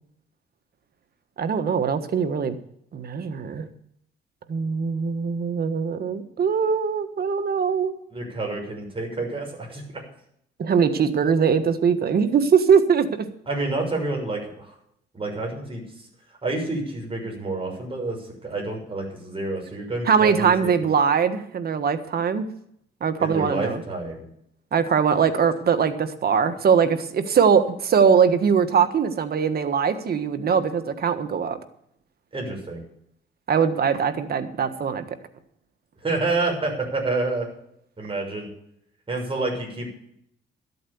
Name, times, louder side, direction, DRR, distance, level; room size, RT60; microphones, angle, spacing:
voice 1, 1.4-2.6 2.9-3.7 4.5-7.9 10.6-13.3 20.1-22.5 23.0-23.8 24.7-31.6 33.5-35.0, right 6 dB, 50° right, 9 dB, 1.5 m, -21 dB
voice 2, 8.1-10.0 13.4-14.7 15.1-15.8 16.4-20.7 23.2-24.2 32.3-32.8 36.0-37.5 38.0-38.5 39.1-39.9, right 2 dB, 25° right, 0 dB, 6.4 m, -28 dB
13.0 x 8.6 x 7.1 m, 0.71 s
cardioid pair, 90°, 20 cm